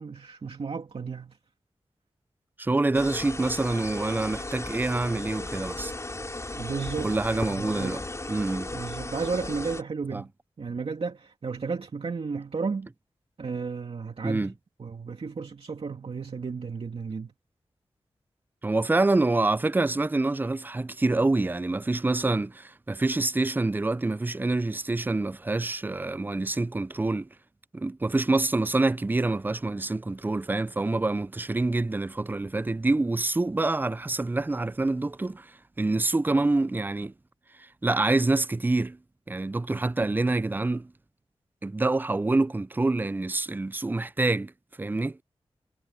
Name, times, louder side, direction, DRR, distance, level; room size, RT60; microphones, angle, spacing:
voice 1, 0.0-1.4 6.5-7.1 7.5-8.0 8.7-10.3 10.6-12.9 13.4-14.5 14.8-17.3 39.7-40.4, right 5 dB, 65° right, 2.3 m, -33 dB
voice 2, 2.6-5.9 7.0-8.0 8.3-8.7 10.1-10.2 14.2-14.5 18.6-27.3 27.7-35.4 35.8-37.1 37.8-39.0 39.3-40.9 41.6-44.5 44.8-45.2, right 2 dB, 20° right, 0.4 m, -26 dB
sound 1, 2.9-9.8, left 2 dB, 30° left, 4.2 m, -35 dB
wide cardioid pair, 70°, 11 cm